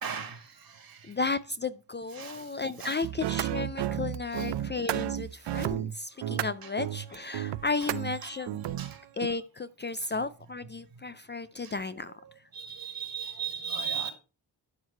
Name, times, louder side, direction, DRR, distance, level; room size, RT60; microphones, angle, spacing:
voice 1, 0.0-1.1 2.1-3.1 4.3-4.5 6.6-6.7 7.8-7.9 8.2-8.3 8.8-9.0 11.6-11.7 12.1-14.1, right 7 dB, 55° right, 1.9 m, -38 dB
voice 2, 1.1-8.6 9.2-12.1, left 4 dB, 25° left, 0.4 m, -34 dB
sound 1, 3.0-9.3, right 12 dB, 75° right, 0.6 m, -32 dB
12.0 x 4.8 x 4.4 m
cardioid pair, 100°, 42 cm